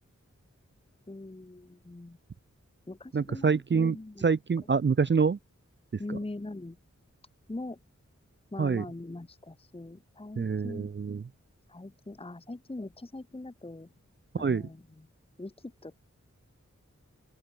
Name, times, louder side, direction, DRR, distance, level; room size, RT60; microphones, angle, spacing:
voice 1, 1.1-2.2 2.9-4.3 6.0-6.8 7.5-7.8 8.5-10.9 11.7-13.9 14.4-15.1 15.4-16.0, left 2 dB, 20° left, 0.9 m, -42 dB
voice 2, 3.1-4.0 4.2-5.4 6.1-6.2 8.6-8.8 10.4-11.2 14.3-14.6, right 5 dB, 40° right, 0.5 m, -26 dB
open air
wide cardioid pair, 45°, 30 cm